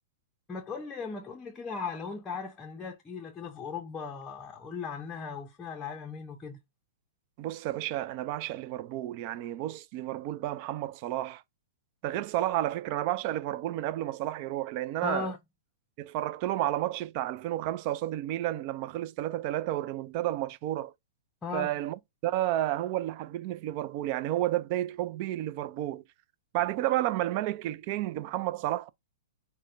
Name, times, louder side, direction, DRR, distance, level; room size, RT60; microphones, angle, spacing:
voice 1, 0.5-6.6 15.0-15.4 21.4-21.7, left 5 dB, 15° left, 0.6 m, -37 dB
voice 2, 7.4-11.4 12.0-15.3 16.0-20.9 21.5-26.0 26.5-28.9, right 14 dB, 45° right, 0.3 m, -31 dB
6.3 x 2.1 x 2.6 m
hypercardioid pair, 115°, 0 cm